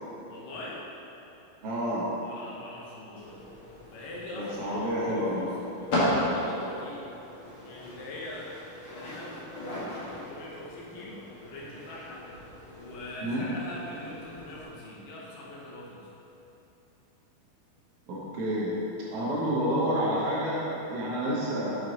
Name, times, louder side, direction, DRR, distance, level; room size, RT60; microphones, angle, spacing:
voice 1, 0.3-0.8 2.2-3.4 3.9-7.1 7.6-8.5 8.9-9.4 9.6-16.1, left 1 dB, 70° left, -4 dB, 2.3 m, -43 dB
voice 2, 1.6-2.1 4.3-5.4 13.2-13.5 18.1-18.7 19.1-21.8, equal, 80° right, -8 dB, 1.3 m, -29 dB
sound 1, 3.2-14.6, left 1 dB, 50° left, 1.7 m, -36 dB
6.7 x 6.4 x 3.9 m, 3.0 s
omnidirectional pair, 4.4 m